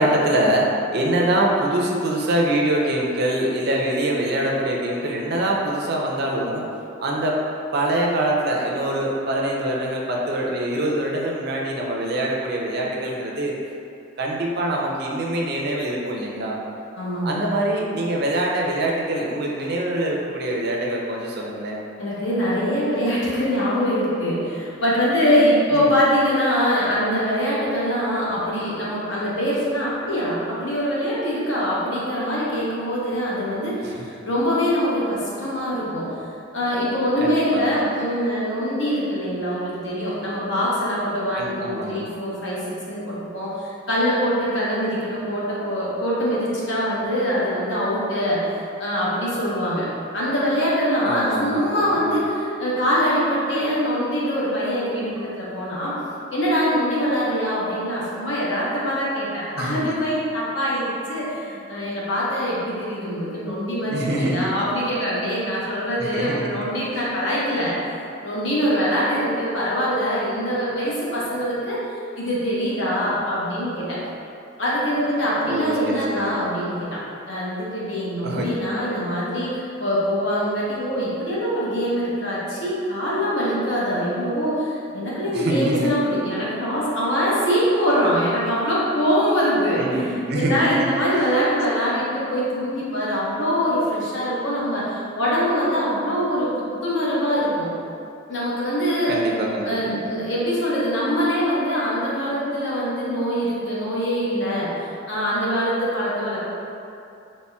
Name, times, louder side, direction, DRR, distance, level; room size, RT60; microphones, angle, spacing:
voice 1, 0.0-6.6 7.0-7.4 7.7-13.5 14.2-16.6 17.2-21.8 25.7-25.9 33.8-34.0 37.2-37.8 41.4-42.0 51.1-51.9 59.6-60.0 63.9-64.5 66.0-66.6 75.4-76.3 78.2-78.5 85.3-85.9 89.8-90.7 99.1-100.1, right 1 dB, 50° right, -2 dB, 0.5 m, -24 dB
voice 2, 17.0-17.5 22.0-36.1 36.5-49.9 50.1-55.9 56.3-67.8 68.2-71.8 72.2-74.0 74.6-90.0 90.3-96.5 96.8-97.7 98.3-99.1 99.6-104.7 105.1-106.4, equal, 60° left, -7 dB, 0.9 m, -23 dB
4.1 x 3.1 x 2.2 m, 2.6 s
head